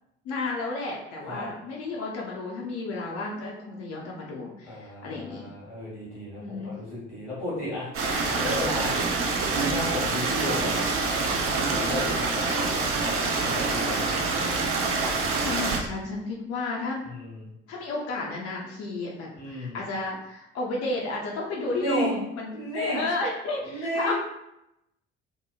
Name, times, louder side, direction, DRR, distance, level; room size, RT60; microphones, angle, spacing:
voice 1, 0.2-5.5 6.4-6.7 15.4-17.0 17.7-24.1, left 3 dB, 50° left, -2 dB, 0.5 m, -32 dB
voice 2, 4.6-7.9 8.2-8.9 9.5-10.8 11.4-13.2 13.4-14.1 17.1-17.4 19.3-19.8 21.7-22.1 22.5-23.0 23.6-24.1, equal, 80° left, -7 dB, 1.0 m, -33 dB
Stream, 7.9-15.8, right 3 dB, 40° right, 0.5 m, -26 dB
2.8 x 2.0 x 2.3 m, 0.84 s
figure-of-eight pair, 45°, 34 cm